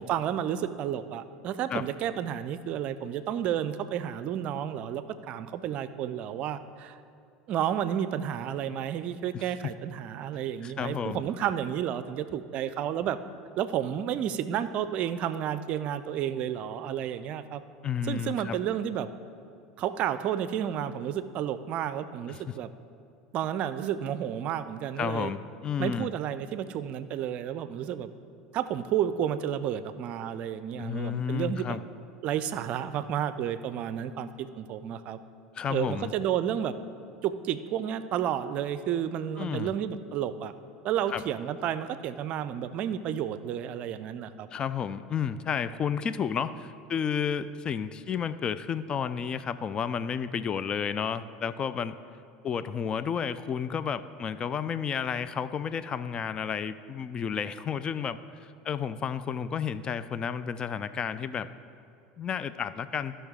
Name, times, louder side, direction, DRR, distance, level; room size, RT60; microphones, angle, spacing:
voice 1, 0.0-7.0 7.5-13.2 13.6-17.6 18.1-19.1 19.8-22.7 23.3-25.3 25.8-28.1 28.5-31.8 32.2-35.2 35.7-36.7 37.2-40.5 40.8-44.5, right 10 dB, 50° right, 13 dB, 0.4 m, -31 dB
voice 2, 10.6-11.2 17.8-18.6 22.3-22.6 25.0-26.1 30.8-31.8 35.5-36.1 39.4-39.7 41.1-41.2 44.5-52.0 52.4-61.5 62.2-63.2, left 7 dB, 35° left, 14 dB, 0.4 m, -31 dB
15.0 x 5.5 x 3.6 m, 2.4 s
hypercardioid pair, 75°, 3 cm